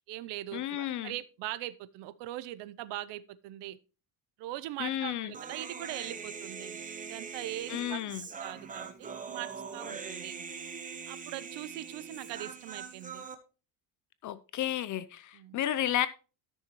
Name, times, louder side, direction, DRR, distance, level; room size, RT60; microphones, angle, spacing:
voice 1, 0.0-3.8 4.4-6.8 7.1-8.0 8.3-10.4 11.1-13.2 15.3-15.6, right 15 dB, 80° right, 0.8 m, -41 dB
voice 2, 0.5-1.1 4.8-5.3 7.7-8.3 14.2-16.1, left 12 dB, 45° left, 0.5 m, -32 dB
Human voice, 5.3-13.4, right 5 dB, 20° right, 0.9 m, -42 dB
13.5 x 6.6 x 3.0 m
cardioid pair, 155°, 42 cm